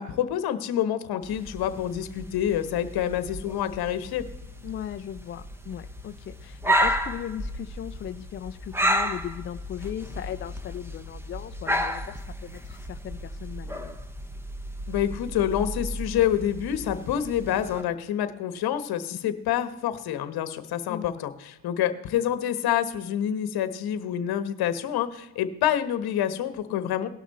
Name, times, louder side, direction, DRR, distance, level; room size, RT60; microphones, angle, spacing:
voice 1, 0.0-4.2 14.9-27.1, left 10 dB, 55° left, 11 dB, 1.2 m, -27 dB
sound 1, 1.2-17.8, equal, 5° right, 0.9 m, -32 dB
voice 2, 4.6-14.0 20.9-21.1 26.7-27.0, left 10 dB, 30° left, 9 dB, 0.4 m, -37 dB
18.0 x 6.1 x 4.2 m, 0.92 s
cardioid pair, 115°, 45 cm